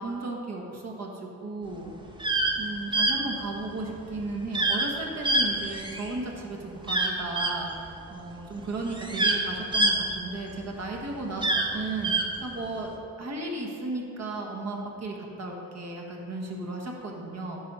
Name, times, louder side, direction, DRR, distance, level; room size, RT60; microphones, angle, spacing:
voice 1, 0.0-1.9 2.6-7.7 8.1-12.1 12.4-12.9 13.2-17.6, right 2 dB, 50° right, 0 dB, 1.5 m, -35 dB
sound 1, 2.1-2.6 2.9-3.1 4.5-4.9 5.2-6.1 6.8-7.5 8.4-8.5 8.9-10.7 11.3-12.3, right 2 dB, 15° right, 0.9 m, -25 dB
9.4 x 4.3 x 5.3 m, 2.7 s
cardioid pair, 85°, 33 cm